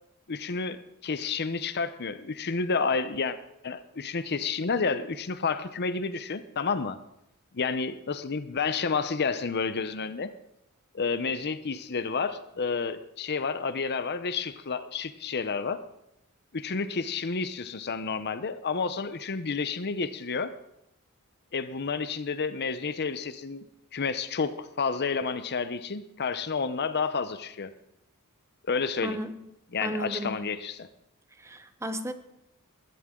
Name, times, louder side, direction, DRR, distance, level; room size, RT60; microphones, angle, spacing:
voice 1, 0.3-3.4 3.6-7.0 7.5-10.3 10.9-15.8 16.5-20.5 21.5-23.7 23.9-27.7 28.7-29.2 29.7-30.9, left 5 dB, 50° left, 12 dB, 0.7 m, -30 dB
voice 2, 29.0-29.5 29.8-30.5 31.3-32.1, right 1 dB, 15° right, 10 dB, 0.9 m, -34 dB
20.0 x 14.5 x 3.8 m, 0.83 s
head